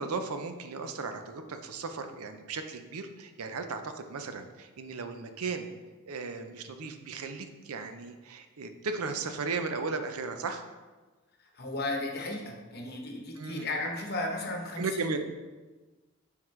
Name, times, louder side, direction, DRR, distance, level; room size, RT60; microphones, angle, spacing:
voice 1, 0.0-5.7 6.1-10.6 13.4-13.7 14.8-15.2, right 4 dB, 85° right, 7 dB, 0.6 m, -36 dB
voice 2, 11.4-15.0, left 2 dB, 45° left, 2 dB, 0.9 m, -35 dB
9.1 x 3.7 x 3.2 m, 1.3 s
head